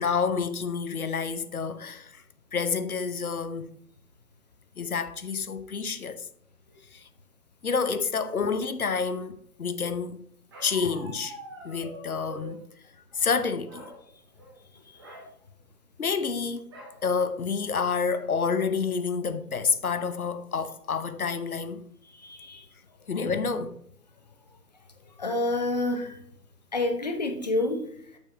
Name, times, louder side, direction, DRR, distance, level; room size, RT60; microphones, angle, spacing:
voice 1, 0.0-2.2 2.5-3.7 4.8-6.3 6.9-7.1 7.6-10.2 10.6-11.4 11.6-12.6 13.1-13.9 16.0-16.7 17.0-21.8 23.1-23.8, left 5 dB, 60° left, 0.9 m, -28 dB
Bark, 10.5-12.6 13.3-14.0 14.3-14.6 14.9-15.3 16.7-17.0 17.5-17.6 17.9-18.4, right 1 dB, 15° right, 1.3 m, -44 dB
voice 2, 22.2-22.6 25.2-26.1 26.7-27.8, left 2 dB, 25° left, 1.0 m, -28 dB
8.8 x 6.4 x 4.3 m
figure-of-eight pair, 145°, 48 cm